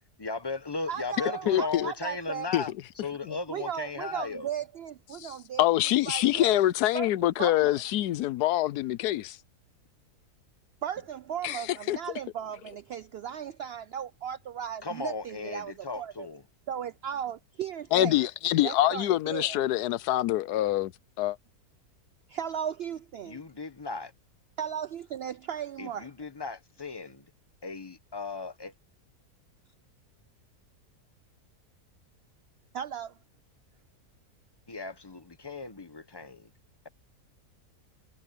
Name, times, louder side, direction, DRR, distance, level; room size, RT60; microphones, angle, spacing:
voice 1, 0.2-4.5 14.8-16.4 23.3-24.1 25.8-27.3 27.6-28.7 34.7-36.5, left 4 dB, 20° left, 0.9 m, -36 dB
voice 2, 0.9-2.5 3.5-5.7 6.1-6.6 6.9-7.1 7.4-7.8 10.8-16.3 16.7-18.3 18.6-19.6 22.3-23.4 24.6-26.1 32.7-33.2, right 9 dB, 85° right, 0.5 m, -36 dB
voice 3, 1.5-1.9 2.5-2.6 5.2-9.4 11.4-12.0 17.9-20.9 21.2-21.4, left 14 dB, 85° left, 1.2 m, -25 dB
omnidirectional pair, 1.6 m